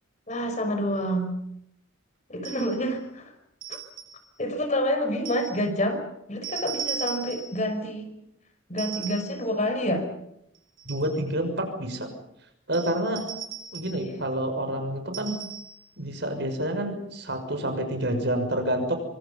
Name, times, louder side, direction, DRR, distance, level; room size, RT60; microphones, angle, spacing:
voice 1, 0.3-1.3 2.3-3.3 3.7-3.8 4.4-6.0 6.3-8.2 8.7-10.1 13.9-14.1, equal, 35° left, 6 dB, 5.6 m, -28 dB
sound 1, 2.4-2.9 3.6-4.3 5.3-5.6 6.4-7.6 8.8-9.4 10.5-11.2 12.7-14.1 15.1-15.8, right 7 dB, 80° right, 7.3 m, -37 dB
voice 2, 10.9-12.1 12.7-13.3 13.7-15.3 16.0-19.0, right 1 dB, 55° right, 6 dB, 6.3 m, -28 dB
28.0 x 25.0 x 5.6 m, 0.78 s
head